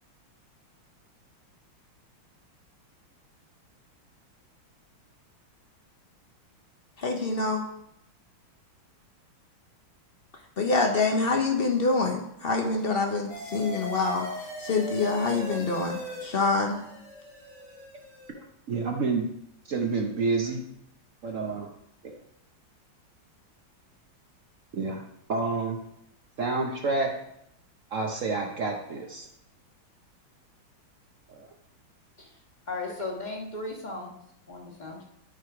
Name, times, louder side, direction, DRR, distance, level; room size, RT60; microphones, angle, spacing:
voice 1, 7.0-7.6 10.6-14.3 14.6-16.8, left 3 dB, 55° left, 3 dB, 0.6 m, -26 dB
sound 1, 13.3-18.3, equal, 80° left, 4.6 m, -40 dB
voice 2, 18.3-19.3 19.7-20.6 21.2-21.7 22.0-22.2 24.7-25.0 25.3-25.8 26.4-27.1 27.9-29.3 31.3-31.5, right 3 dB, 60° right, 2 dB, 0.8 m, -29 dB
voice 3, 32.7-34.2 34.5-35.0, left 3 dB, 25° left, 0 dB, 1.4 m, -36 dB
11.5 x 4.7 x 4.9 m, 0.77 s
omnidirectional pair, 2.3 m